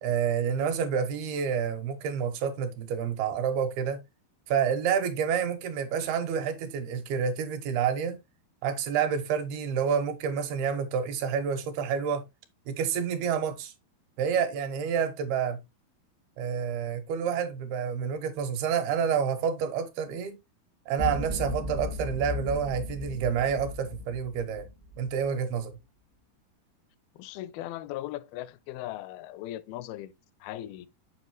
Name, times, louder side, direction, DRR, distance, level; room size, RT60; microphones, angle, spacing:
voice 1, 0.0-4.0 4.5-8.2 8.6-12.2 12.7-13.7 14.2-15.6 16.4-20.4 20.9-24.7 25.0-25.7, right 7 dB, 80° right, 2.9 m, -28 dB
sound 1, 21.0-25.3, left 2 dB, 55° right, 0.8 m, -36 dB
voice 2, 27.2-30.1 30.4-30.9, left 14 dB, 80° left, 2.3 m, -38 dB
7.9 x 5.6 x 3.0 m
omnidirectional pair, 4.5 m